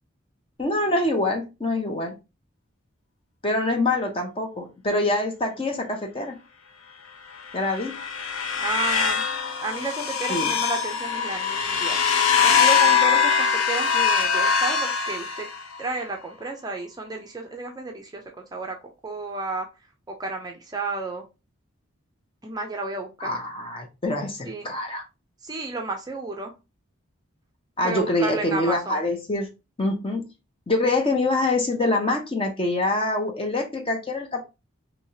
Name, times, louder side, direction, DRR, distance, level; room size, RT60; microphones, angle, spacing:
voice 1, 0.6-2.2 3.4-6.4 7.5-8.0 10.3-10.5 23.2-25.0 27.8-29.5 29.8-30.3 30.7-34.4, left 2 dB, 25° left, 0.6 m, -25 dB
sound 1, 7.5-15.8, left 6 dB, 85° left, 0.6 m, -22 dB
voice 2, 8.6-9.3 9.6-15.5 15.8-18.8 19.0-19.7 20.1-21.2 22.4-23.3 24.4-24.7 25.4-26.5 27.8-29.0, right 3 dB, 20° right, 0.4 m, -32 dB
3.2 x 2.7 x 2.7 m
head